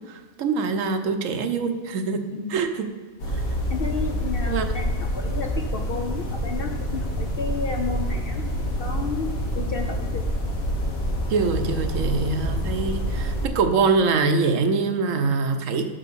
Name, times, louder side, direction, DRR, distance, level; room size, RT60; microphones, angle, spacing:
voice 1, 0.1-2.2 2.5-2.9 3.3-3.4 4.5-4.6 11.3-15.9, right 4 dB, 70° right, 7 dB, 1.1 m, -24 dB
voice 2, 2.3-2.6 3.7-8.5 8.8-10.3, left 4 dB, 60° left, 4 dB, 0.6 m, -32 dB
sound 1, 3.2-13.5, equal, 75° left, 1.9 m, -27 dB
9.0 x 6.0 x 4.2 m, 1.4 s
omnidirectional pair, 1.5 m